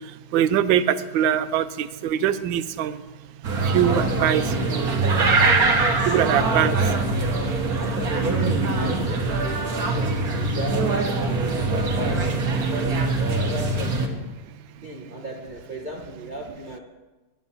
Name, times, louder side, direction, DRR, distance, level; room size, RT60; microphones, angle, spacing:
voice 1, 0.3-3.0 3.6-5.0 6.1-6.7, right 10 dB, 85° right, 13 dB, 1.4 m, -23 dB
sound 1, 3.4-14.1, right 3 dB, 55° right, 1.7 m, -23 dB
voice 2, 6.4-7.0 7.8-12.3 12.7-14.3 14.8-16.8, right 1 dB, 30° right, -2 dB, 1.2 m, -35 dB
11.5 x 9.3 x 5.7 m, 1.2 s
omnidirectional pair, 2.0 m